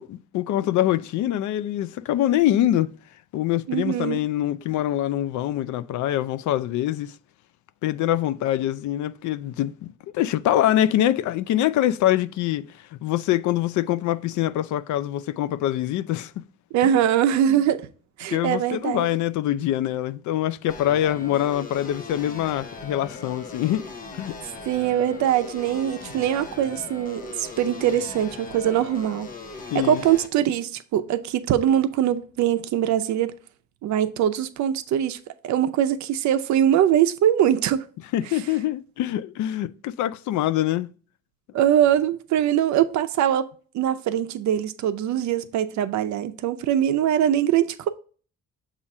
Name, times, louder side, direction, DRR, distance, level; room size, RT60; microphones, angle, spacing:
voice 1, 0.0-2.9 3.3-7.1 7.8-12.7 13.0-16.4 16.8-16.9 17.5-17.6 18.3-23.9 24.1-24.4 29.7-30.0 38.1-40.9, left 12 dB, 70° left, 0.4 m, -24 dB
voice 2, 3.7-4.2 16.7-17.9 18.2-19.1 24.7-29.3 29.7-33.3 33.8-37.9 41.5-47.9, right 10 dB, 65° right, 0.6 m, -22 dB
sound 1, 20.7-30.3, left 3 dB, 30° left, 0.6 m, -39 dB
7.2 x 2.5 x 5.3 m
cardioid pair, 175°, 30 cm